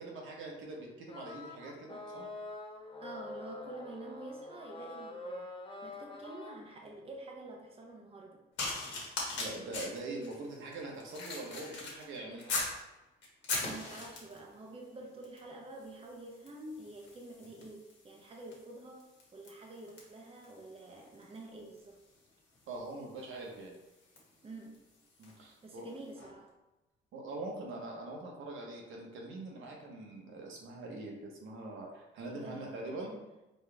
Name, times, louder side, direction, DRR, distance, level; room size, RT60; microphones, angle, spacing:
voice 1, 0.0-2.3 9.3-12.6 22.7-23.8 25.2-25.9 27.1-33.1, right 2 dB, 80° right, -1 dB, 1.1 m, -43 dB
sound 1, 1.1-6.6, left 1 dB, 25° left, 0.7 m, -45 dB
voice 2, 3.0-5.5 5.8-8.4 13.6-22.0 24.4-24.8 25.6-26.5 32.3-33.2, right 2 dB, 30° right, 0 dB, 0.8 m, -48 dB
sound 2, 8.6-12.8 13.2-14.5 15.2-15.5 15.8-25.4 26.1-26.3, left 3 dB, 70° left, 1.5 m, -42 dB
4.0 x 3.1 x 3.4 m, 1.0 s
cardioid pair, 90°, 20 cm